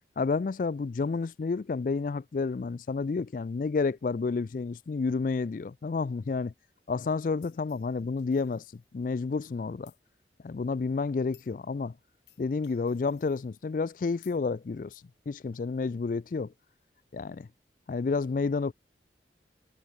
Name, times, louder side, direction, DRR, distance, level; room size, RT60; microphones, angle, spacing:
voice 1, 0.2-6.5 6.9-8.6 8.9-9.9 10.4-11.9 12.4-16.5 17.1-17.5 17.9-18.7, left 4 dB, 45° left, 0.3 m, -30 dB
sound 1, 7.4-9.1 9.9-10.0 10.8-10.9 11.3-11.6 12.3-13.5 14.2-14.4, left 15 dB, 75° left, 7.9 m, -61 dB
head